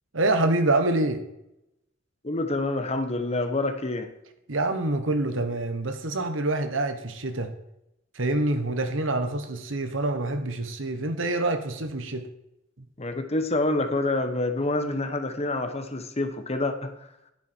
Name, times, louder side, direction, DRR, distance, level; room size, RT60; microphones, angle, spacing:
voice 1, 0.1-1.2 4.5-7.5 8.1-12.3, right 2 dB, 80° right, 8 dB, 1.4 m, -26 dB
voice 2, 2.2-4.1 13.0-16.9, left 2 dB, 35° left, 8 dB, 1.1 m, -27 dB
11.0 x 10.5 x 4.6 m, 0.84 s
head